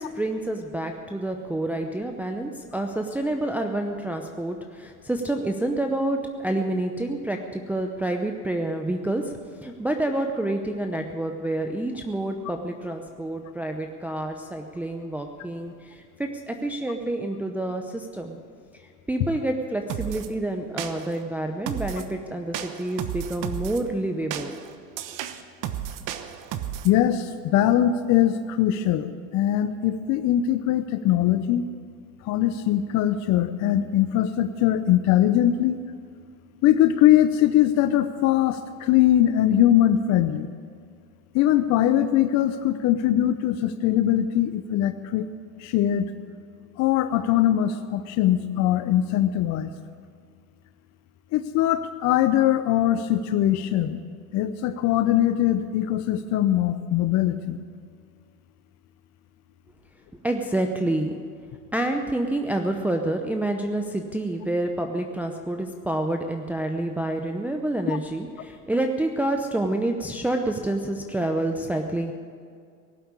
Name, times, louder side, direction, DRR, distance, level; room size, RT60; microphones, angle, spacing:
voice 1, 0.0-9.3 9.6-18.4 19.1-24.6 60.2-61.2 61.7-72.1, right 1 dB, 5° right, 3 dB, 0.7 m, -28 dB
sound 1, 19.9-20.3 20.8-21.2 21.7-22.1 22.5-23.8 24.3-26.9, right 10 dB, 45° right, 1.1 m, -33 dB
voice 2, 26.8-31.6 32.2-35.8 36.6-40.5 41.3-45.3 45.6-46.1 46.8-49.7 51.3-54.0 54.3-57.6 67.9-68.0, left 12 dB, 40° left, 10 dB, 0.7 m, -21 dB
18.0 x 7.9 x 9.7 m, 2.2 s
supercardioid pair, 120°, 44 cm